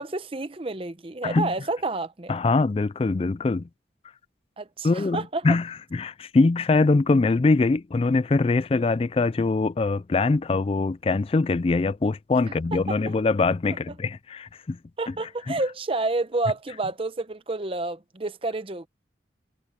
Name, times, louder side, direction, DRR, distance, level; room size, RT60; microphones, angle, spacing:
voice 1, 0.0-2.4 4.6-5.4 12.7-12.8 15.0-18.9, right 2 dB, 30° right, 0.8 m, -29 dB
voice 2, 2.3-3.7 4.8-14.8 15.5-15.6, left 3 dB, 30° left, 0.3 m, -23 dB
head